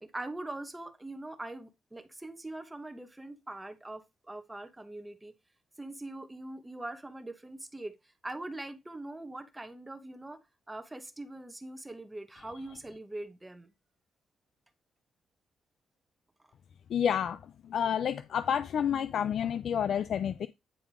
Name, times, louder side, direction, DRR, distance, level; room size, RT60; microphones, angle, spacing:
voice 1, 0.0-5.3 5.8-7.9 8.2-13.7, right 2 dB, 10° right, 1.1 m, -42 dB
voice 2, 16.9-17.4 17.7-20.5, left 8 dB, 65° left, 0.4 m, -29 dB
9.1 x 3.6 x 4.6 m
cardioid pair, 100°, 0 cm